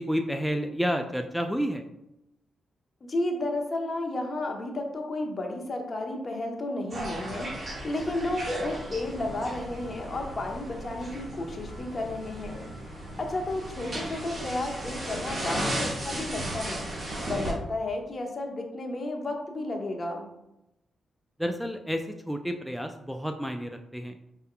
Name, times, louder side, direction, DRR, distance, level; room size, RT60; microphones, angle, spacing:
voice 1, 0.0-1.8 21.4-24.2, equal, ahead, 6 dB, 0.4 m, -30 dB
voice 2, 3.0-12.6 13.2-16.9 17.3-20.3, left 2 dB, 45° left, 2 dB, 0.9 m, -32 dB
sound 1, 6.9-17.5, right 1 dB, 45° right, 1.5 m, -35 dB
5.4 x 3.6 x 2.2 m, 0.87 s
supercardioid pair, 50°, 0 cm